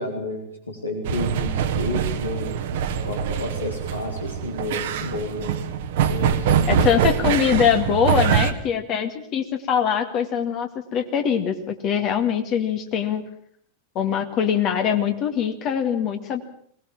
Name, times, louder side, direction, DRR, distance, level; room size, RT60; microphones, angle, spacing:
voice 1, 0.0-2.6 3.0-5.6 6.1-7.1, left 2 dB, 80° left, 1 dB, 3.5 m, -31 dB
sound 1, 1.0-8.5, right 7 dB, 55° right, 1.6 m, -24 dB
voice 2, 6.7-13.2 14.0-16.4, left 8 dB, 35° left, 6 dB, 2.2 m, -23 dB
22.0 x 19.0 x 7.5 m, 0.63 s
figure-of-eight pair, 90°, 0 cm